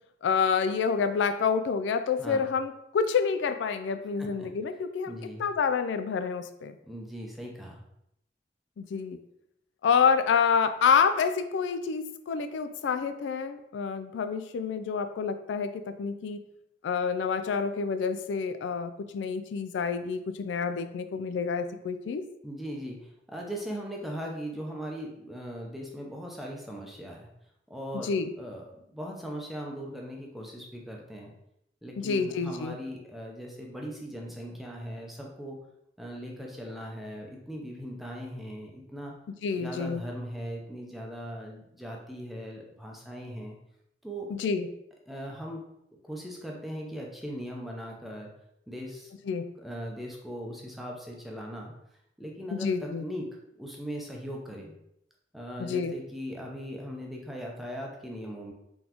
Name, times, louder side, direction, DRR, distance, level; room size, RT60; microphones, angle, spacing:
voice 1, 0.2-5.1 5.4-6.8 8.8-9.2 9.8-16.4 16.8-22.2 28.0-28.3 32.0-32.8 39.4-40.0 44.3-44.7 49.3-49.4 52.5-53.0 55.6-55.9, left 6 dB, 80° left, 9 dB, 0.3 m, -28 dB
voice 2, 5.1-5.4 6.8-7.8 22.4-27.3 27.7-28.1 28.4-31.3 31.8-35.6 36.0-39.1 39.6-43.6 44.0-44.3 45.1-45.6 46.0-48.3 48.7-49.1 49.6-51.7 52.2-53.3 53.6-54.7 55.3-58.5, equal, ahead, -1 dB, 0.6 m, -39 dB
3.9 x 3.8 x 2.9 m, 0.79 s
head